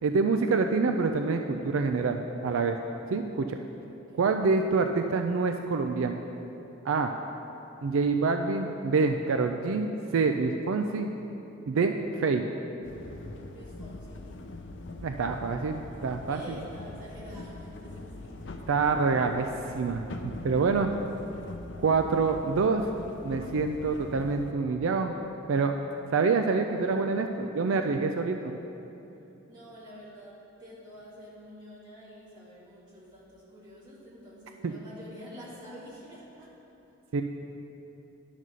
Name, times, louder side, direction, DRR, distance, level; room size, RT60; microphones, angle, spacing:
voice 1, 0.0-2.8 3.1-3.6 4.2-6.2 6.8-7.1 7.8-9.9 10.1-11.1 11.7-12.4 15.0-16.4 18.7-20.9 21.8-22.9 23.2-25.1 25.5-25.8 26.1-28.5 34.6-34.7 37.1-37.2, right 4 dB, 75° right, 5 dB, 0.4 m, -26 dB
sound 1, 12.8-24.5, left 2 dB, 60° left, 0.5 m, -43 dB
voice 2, 13.5-14.4 16.3-18.7 29.5-36.6, equal, 20° right, -9 dB, 2.1 m, -48 dB
10.5 x 4.1 x 6.2 m, 3.0 s
head